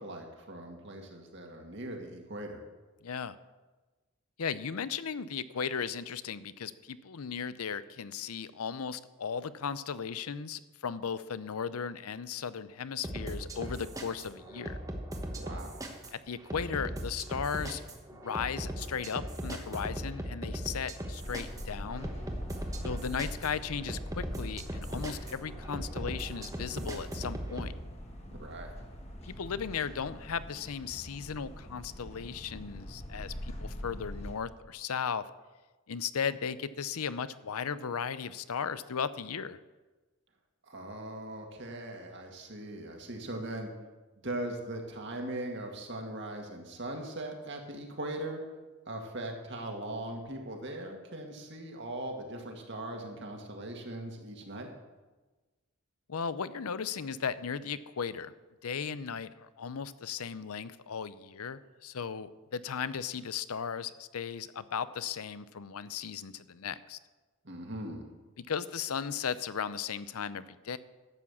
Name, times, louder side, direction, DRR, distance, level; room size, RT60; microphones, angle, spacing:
voice 1, 0.0-2.6 15.4-15.7 28.3-28.7 40.7-43.7 44.2-48.4 48.9-54.7 67.4-68.1, right 1 dB, 50° right, 2 dB, 2.1 m, -40 dB
voice 2, 3.0-3.4 4.4-14.8 16.1-17.8 18.1-22.1 22.8-27.7 29.2-35.2 35.9-39.6 56.1-58.3 58.6-67.0 68.5-70.8, left 6 dB, 80° left, 15 dB, 0.6 m, -36 dB
sound 1, 13.0-27.7, right 1 dB, 15° right, 1.2 m, -39 dB
sound 2, 21.2-34.3, equal, 30° left, 1.5 m, -43 dB
12.0 x 8.5 x 7.2 m, 1.2 s
head